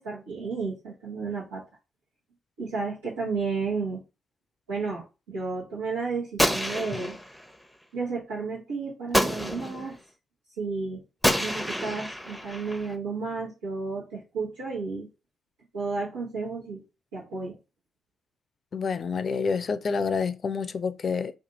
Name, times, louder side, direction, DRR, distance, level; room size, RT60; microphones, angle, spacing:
voice 1, 0.0-1.6 2.6-4.0 4.7-7.1 7.9-9.9 10.6-11.0 11.4-15.1 15.7-16.8 17.1-17.6, right 4 dB, 90° right, 1.1 m, -32 dB
Gunshot gunfire, 6.4-7.5 9.1-9.9 11.2-12.9, equal, ahead, 0.7 m, -27 dB
voice 2, 18.7-21.3, left 5 dB, 50° left, 0.4 m, -28 dB
2.6 x 2.4 x 4.0 m
hypercardioid pair, 40°, 0 cm